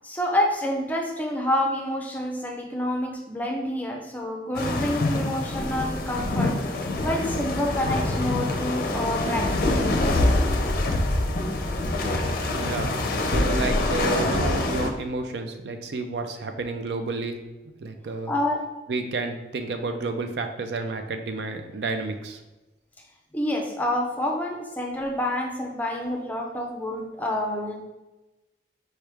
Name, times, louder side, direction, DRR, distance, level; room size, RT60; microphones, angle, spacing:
voice 1, 0.0-6.5 7.0-10.6 18.3-18.6 23.3-27.7, left 1 dB, 10° left, 0 dB, 0.6 m, -28 dB
sound 1, 4.5-14.9, left 2 dB, 55° left, 0.5 m, -25 dB
voice 2, 12.5-17.4 17.8-18.3 18.9-22.4, right 3 dB, 70° right, 6 dB, 0.4 m, -30 dB
4.5 x 3.2 x 3.4 m, 1.1 s
head